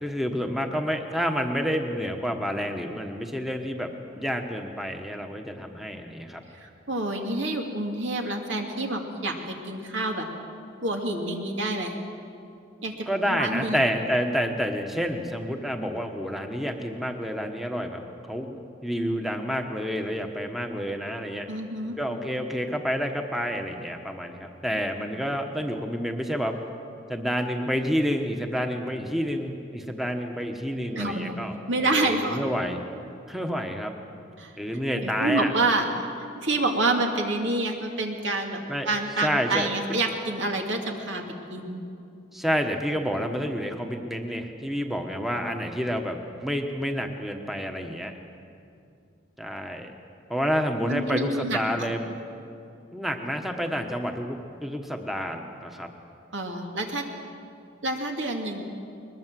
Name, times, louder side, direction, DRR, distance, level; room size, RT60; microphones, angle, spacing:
voice 1, 0.0-3.9 4.1-6.4 13.1-18.0 18.3-21.5 22.0-26.5 27.1-32.8 33.3-33.9 34.6-35.5 38.7-38.9 39.2-39.7 42.3-48.1 49.4-49.9 50.3-52.2 52.9-55.9, equal, ahead, 4 dB, 1.2 m, -29 dB
voice 2, 6.5-10.3 10.8-11.9 12.8-13.8 21.5-22.0 30.9-31.4 31.7-32.4 34.4-34.6 34.9-35.8 36.4-41.2 41.5-41.8 50.9-51.9 56.3-57.0 57.8-58.6, right 2 dB, 80° right, 2 dB, 2.5 m, -28 dB
21.0 x 21.0 x 7.6 m, 2.5 s
head